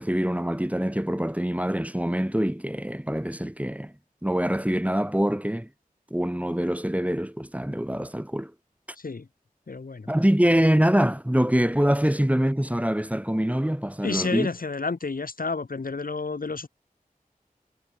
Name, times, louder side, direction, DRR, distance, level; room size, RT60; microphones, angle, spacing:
voice 1, 0.0-3.9 4.2-5.7 6.1-8.5 10.1-14.5, equal, 10° right, 1.6 m, -24 dB
voice 2, 9.7-10.1 14.0-16.7, left 4 dB, 75° left, 1.1 m, -30 dB
wide cardioid pair, 50°, 15 cm